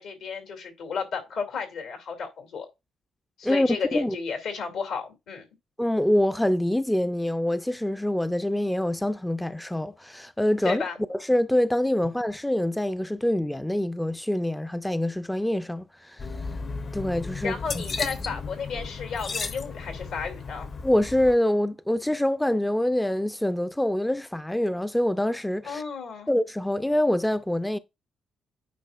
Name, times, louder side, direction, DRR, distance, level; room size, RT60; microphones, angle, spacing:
voice 1, 0.0-2.7 3.4-5.4 10.6-11.0 17.4-20.7 25.6-26.3, left 5 dB, 80° left, 2.4 m, -33 dB
voice 2, 3.4-4.2 5.8-10.8 11.1-16.3 16.9-17.8 20.8-25.8 26.3-27.8, left 1 dB, 5° left, 0.3 m, -25 dB
sound 1, 16.2-21.3, left 4 dB, 45° left, 0.7 m, -34 dB
9.1 x 4.6 x 2.4 m
cardioid pair, 90°, 0 cm